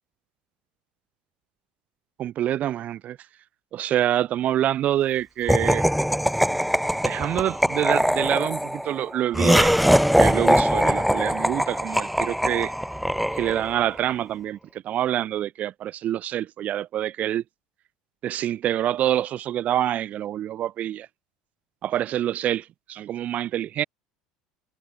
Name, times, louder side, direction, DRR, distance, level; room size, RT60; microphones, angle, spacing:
voice 1, 2.2-3.2 3.7-5.9 7.0-9.7 10.2-12.7 13.3-17.4 18.2-21.1 21.8-23.8, right 12 dB, 50° right, 1.2 m, -26 dB
Laughter, 5.5-13.9, equal, ahead, 0.9 m, -22 dB
hypercardioid pair, 75°, 3 cm